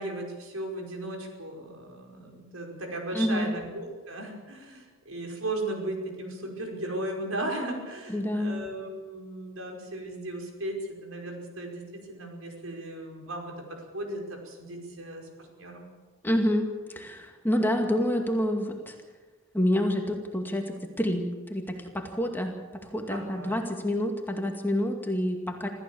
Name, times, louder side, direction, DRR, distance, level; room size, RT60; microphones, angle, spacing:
voice 1, 0.0-13.5 13.9-15.9 23.1-23.7, right 1 dB, 80° right, 1 dB, 5.3 m, -36 dB
voice 2, 3.1-3.5 8.1-8.5 16.2-18.9 19.5-25.7, equal, 10° left, 3 dB, 2.2 m, -28 dB
26.0 x 15.0 x 7.1 m, 1.4 s
head